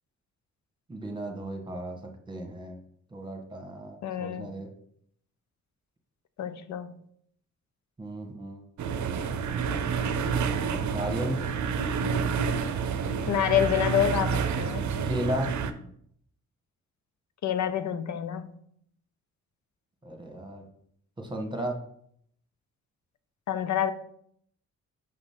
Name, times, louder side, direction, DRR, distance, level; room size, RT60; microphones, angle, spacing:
voice 1, 0.9-2.0 2.3-2.8 3.1-4.7 8.0-8.6 10.8-11.4 15.0-15.5 20.0-20.7 21.2-21.8, right 1 dB, 15° right, 4 dB, 1.4 m, -34 dB
voice 2, 4.0-4.5 6.4-7.0 13.3-14.9 17.4-18.6 23.5-23.9, left 9 dB, 65° left, 12 dB, 0.6 m, -27 dB
sound 1, 8.8-15.7, right 6 dB, 65° right, 0.6 m, -29 dB
6.2 x 3.0 x 5.7 m, 0.68 s
cardioid pair, 70°, 31 cm